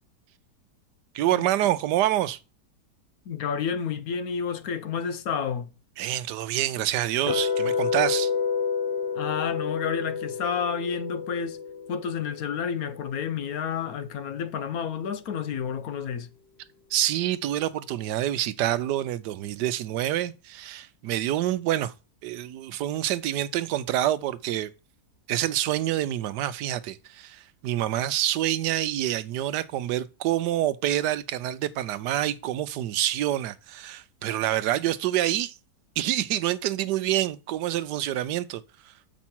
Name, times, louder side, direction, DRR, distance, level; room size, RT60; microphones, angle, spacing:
voice 1, 1.1-2.4 6.0-8.3 16.9-21.9 22.2-24.7 25.3-35.5 36.0-38.6, right 13 dB, 80° right, 1.2 m, -27 dB
voice 2, 3.3-5.7 9.1-11.6 11.9-16.3, left 7 dB, 65° left, 1.1 m, -30 dB
sound 1, 7.3-13.3, left 6 dB, 40° left, 1.4 m, -29 dB
7.2 x 5.4 x 4.3 m
omnidirectional pair, 1.8 m